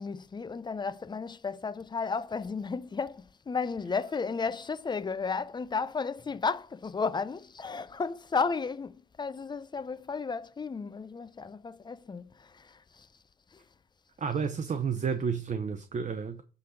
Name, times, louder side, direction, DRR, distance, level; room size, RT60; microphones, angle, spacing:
voice 1, 0.0-13.1 13.5-13.6, left 5 dB, 20° left, 0.5 m, -33 dB
voice 2, 14.2-16.4, right 6 dB, 40° right, 0.8 m, -31 dB
8.3 x 4.0 x 6.3 m
cardioid pair, 90°, 20 cm